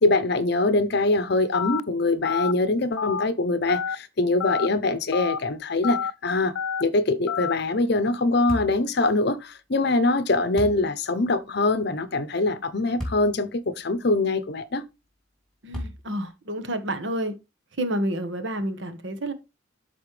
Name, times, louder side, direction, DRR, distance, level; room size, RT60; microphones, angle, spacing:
voice 1, 0.0-6.5 6.8-14.8, left 2 dB, 50° left, 0.7 m, -23 dB
Telephone, 1.5-1.8 2.2-2.5 3.0-3.2 3.7-4.0 4.4-4.7 5.1-5.4 5.8-6.1 6.6-6.8 7.3-7.5, left 7 dB, 85° left, 0.4 m, -28 dB
sound 1, 8.5-8.8 10.6-10.8 13.0-13.3 13.9-14.0 15.7-16.2, equal, 5° left, 2.5 m, -33 dB
voice 2, 15.6-17.3 17.8-19.3, right 1 dB, 60° right, 1.3 m, -29 dB
12.5 x 4.2 x 3.3 m
head